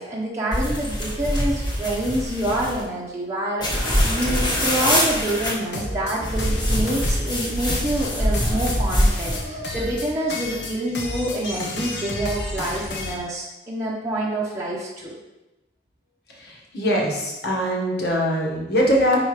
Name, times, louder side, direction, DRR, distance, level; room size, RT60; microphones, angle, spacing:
voice 1, 0.0-15.2, right 1 dB, 15° right, -6 dB, 0.9 m, -27 dB
sound 1, 0.5-2.8 3.6-5.5 6.2-9.4, equal, 25° left, 1.3 m, -23 dB
sound 2, 5.6-13.2, left 1 dB, 80° left, 1.1 m, -32 dB
voice 2, 16.4-19.2, equal, 65° left, -2 dB, 1.5 m, -22 dB
4.9 x 4.5 x 4.8 m, 1.0 s
head